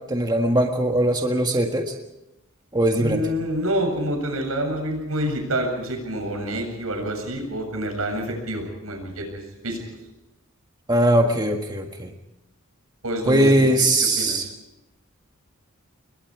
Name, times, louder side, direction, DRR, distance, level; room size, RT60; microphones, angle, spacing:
voice 1, 0.1-1.9 2.7-3.2 10.9-12.1 13.3-14.5, right 1 dB, 20° right, 3 dB, 1.7 m, -20 dB
voice 2, 3.0-9.8 13.0-13.7 14.2-14.4, equal, 85° right, 4 dB, 7.6 m, -27 dB
29.0 x 22.0 x 4.9 m, 0.90 s
head